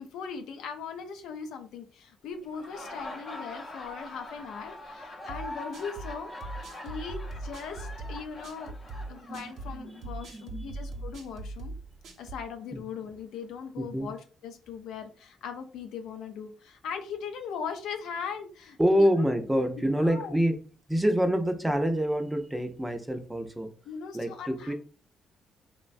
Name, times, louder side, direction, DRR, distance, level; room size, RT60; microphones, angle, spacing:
voice 1, 0.0-6.3 6.8-8.8 9.1-11.7 12.2-19.1 19.8-20.3 23.9-24.7, left 6 dB, 85° left, 6 dB, 0.4 m, -39 dB
Laughter, 2.4-10.1, left 1 dB, 40° left, 0.6 m, -43 dB
sound 1, 5.3-12.5, right 2 dB, 75° right, 0.7 m, -40 dB
voice 2, 9.8-11.0 12.7-12.8 13.8-14.1 18.8-20.6 20.9-23.7 24.1-24.7, equal, 10° right, 6 dB, 0.5 m, -27 dB
3.1 x 2.1 x 2.5 m, 0.39 s
cardioid pair, 90°, 0 cm